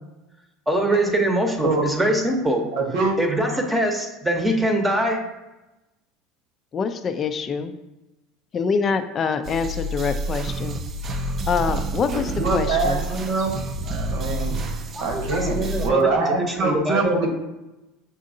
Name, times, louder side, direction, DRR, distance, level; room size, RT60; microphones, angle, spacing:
voice 1, 0.7-2.6 3.2-5.2 15.0-17.3, right 1 dB, 15° right, 1 dB, 0.8 m, -23 dB
voice 2, 2.7-3.2 12.1-13.5 13.8-17.3, right 3 dB, 70° right, 1 dB, 1.0 m, -24 dB
voice 3, 6.7-7.7 8.5-10.8 11.1-13.1, left 5 dB, 35° left, 8 dB, 0.3 m, -25 dB
sound 1, 9.4-15.9, right 1 dB, 40° right, 0.4 m, -29 dB
6.2 x 2.6 x 2.6 m, 1.0 s
supercardioid pair, 95°, 0 cm